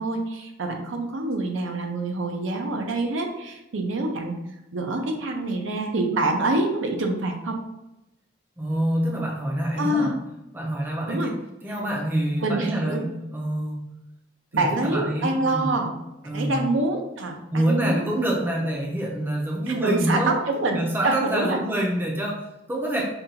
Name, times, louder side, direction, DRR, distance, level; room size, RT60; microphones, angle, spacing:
voice 1, 0.0-4.4 4.7-7.6 9.8-10.2 11.1-11.3 12.4-13.0 14.5-16.0 16.3-18.0 19.7-21.6, right 2 dB, 75° right, 3 dB, 0.6 m, -26 dB
voice 2, 8.6-10.1 10.5-11.4 11.6-13.1 13.3-13.9 14.5-15.7 16.2-16.6 17.5-20.4 20.7-23.0, right 1 dB, 10° right, -2 dB, 0.5 m, -26 dB
5.3 x 2.3 x 2.8 m, 0.89 s
head